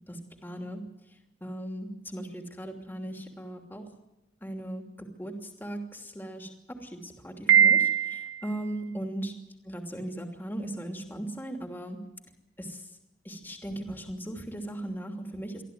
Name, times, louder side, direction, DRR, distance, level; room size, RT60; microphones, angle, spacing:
voice 1, 0.1-0.8 1.4-3.9 4.4-6.5 6.8-9.3 9.7-12.0 12.6-12.8 13.2-15.6, right 1 dB, 10° left, 3 dB, 2.9 m, -38 dB
Piano, 7.5-8.5, right 8 dB, 85° right, 2.4 m, -21 dB
24.0 x 15.0 x 9.4 m, 0.96 s
head